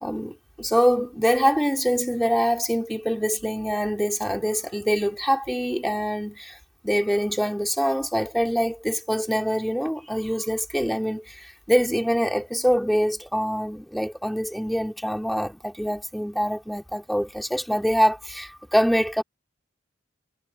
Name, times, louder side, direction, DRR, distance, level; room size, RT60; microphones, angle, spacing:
voice 1, 0.0-6.6 6.8-19.2, equal, ahead, 2.4 m, -24 dB
head